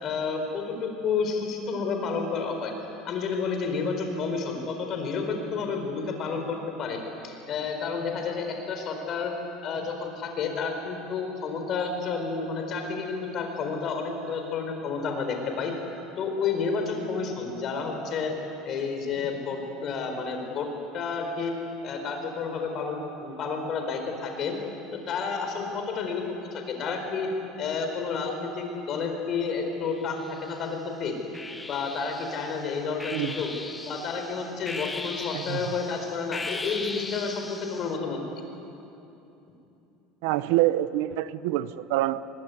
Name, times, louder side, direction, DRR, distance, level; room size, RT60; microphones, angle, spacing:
voice 1, 0.0-2.7 3.0-9.3 9.6-15.7 16.2-18.3 18.6-20.7 20.9-21.5 21.8-24.6 24.9-26.2 26.5-27.3 27.6-31.2 31.7-33.5 33.9-38.2, left 5 dB, 35° left, 4 dB, 4.5 m, -30 dB
sound 1, 30.0-30.7 31.3-38.0, left 2 dB, 10° left, 1.3 m, -38 dB
voice 2, 33.1-33.4 35.3-35.6 40.2-42.2, right 15 dB, 75° right, 14 dB, 0.8 m, -26 dB
23.5 x 22.0 x 9.7 m, 2.9 s
cardioid pair, 160°, 0 cm